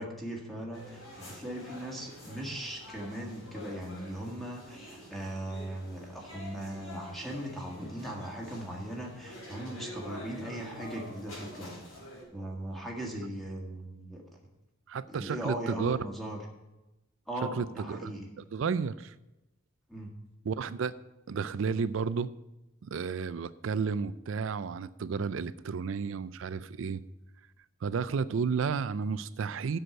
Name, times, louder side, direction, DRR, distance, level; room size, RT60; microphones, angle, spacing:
voice 1, 0.0-11.9 12.3-14.2 15.1-16.4 17.3-18.3 19.9-20.1, right 1 dB, ahead, -1 dB, 1.7 m, -39 dB
sound 1, 0.7-12.2, left 1 dB, 85° left, 4.2 m, -47 dB
voice 2, 14.9-16.0 17.6-19.1 20.5-20.9 21.3-22.3 22.8-27.0 27.8-29.8, right 5 dB, 65° right, 16 dB, 0.4 m, -32 dB
7.7 x 6.4 x 7.7 m, 0.99 s
head